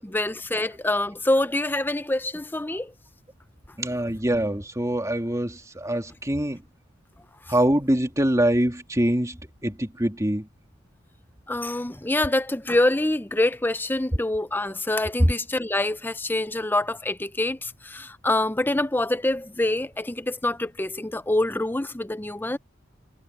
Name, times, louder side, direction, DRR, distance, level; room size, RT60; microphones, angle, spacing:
voice 1, 0.0-2.9 11.5-22.6, left 1 dB, 10° left, 0.6 m, -25 dB
voice 2, 3.8-6.6 7.5-10.5 14.1-14.2 15.2-15.3, right 1 dB, 15° right, 2.8 m, -24 dB
head